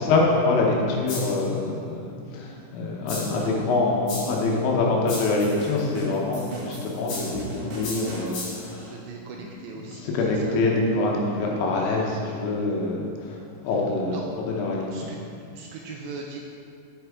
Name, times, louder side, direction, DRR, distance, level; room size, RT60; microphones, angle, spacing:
voice 1, 0.0-8.9 9.9-13.4 13.6-14.2 14.5-15.1, left 3 dB, 75° left, -1 dB, 3.2 m, -25 dB
sound 1, 1.1-1.5 3.1-3.5 4.1-4.5 5.1-5.5 7.1-7.5 7.8-8.7, left 3 dB, 60° left, 2.8 m, -35 dB
voice 2, 2.5-2.9 3.4-3.7 8.5-10.6 14.1-14.3 14.9-15.2 15.5-16.4, right 4 dB, 85° right, -1 dB, 2.5 m, -40 dB
sound 2, 5.4-8.6, right 2 dB, 60° right, 2.8 m, -38 dB
8.0 x 7.9 x 3.5 m, 2.4 s
omnidirectional pair, 5.5 m